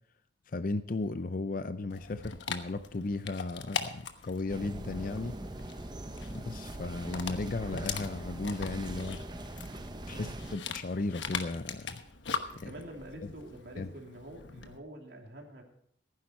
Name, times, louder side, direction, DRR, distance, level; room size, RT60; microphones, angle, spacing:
voice 1, 0.5-5.3 6.3-9.2 10.1-12.0 12.6-12.7 13.8-13.9, left 3 dB, 50° left, 11 dB, 0.5 m, -35 dB
Dog, 1.9-14.8, left 6 dB, 85° left, 1.1 m, -41 dB
sound 1, 4.5-10.6, right 1 dB, 25° right, 0.7 m, -41 dB
voice 2, 10.1-10.4 12.6-15.6, right 1 dB, 65° right, 1 dB, 2.8 m, -47 dB
16.0 x 9.7 x 4.3 m, 0.65 s
head